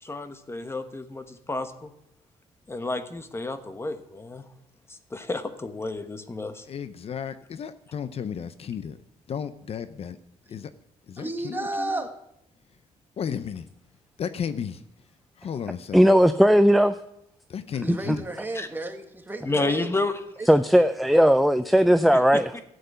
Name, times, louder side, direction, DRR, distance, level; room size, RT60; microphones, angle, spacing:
voice 1, 0.0-1.9 2.7-4.4 5.1-6.6 18.5-18.7 19.5-20.1 22.3-22.6, left 2 dB, 20° left, 9 dB, 1.2 m, -31 dB
voice 2, 6.6-9.0 9.3-10.2 10.5-10.7 11.1-12.0 13.2-13.7 14.2-14.8 15.4-16.0 17.5-18.2, left 7 dB, 55° left, 12 dB, 0.7 m, -33 dB
voice 3, 11.2-12.2 17.8-19.9 20.4-20.5, right 2 dB, 15° right, 5 dB, 1.7 m, -33 dB
voice 4, 15.9-16.9 18.1-18.2 20.5-22.5, equal, ahead, 11 dB, 0.5 m, -17 dB
13.5 x 8.0 x 8.0 m, 0.80 s
cardioid pair, 105°, 12 cm